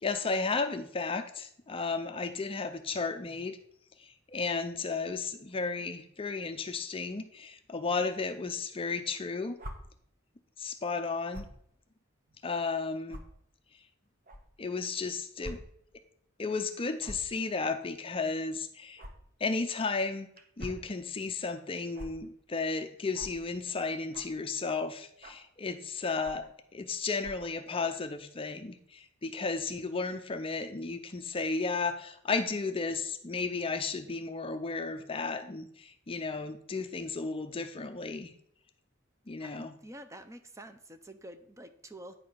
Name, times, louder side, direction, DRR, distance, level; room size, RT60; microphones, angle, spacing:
voice 1, 0.0-3.6 4.0-9.6 10.6-11.4 12.4-13.2 14.6-15.6 16.4-19.0 19.4-20.3 20.6-38.3 39.3-39.8, left 4 dB, 25° left, 8 dB, 0.5 m, -34 dB
sound 1, 9.6-9.7 11.3-11.5 12.3-12.4 13.1-13.2 14.3-14.4 15.4-15.5 15.9-16.0 17.0-17.3 19.0-19.1 20.4-20.8 21.9-22.1 23.1-23.3 24.1-24.4 25.2-25.5 26.2-26.5 27.2-27.5, equal, 45° right, 1.2 m, -43 dB
voice 2, 39.4-42.2, right 1 dB, 15° right, 8 dB, 0.6 m, -48 dB
9.3 x 4.9 x 5.7 m, 0.67 s
head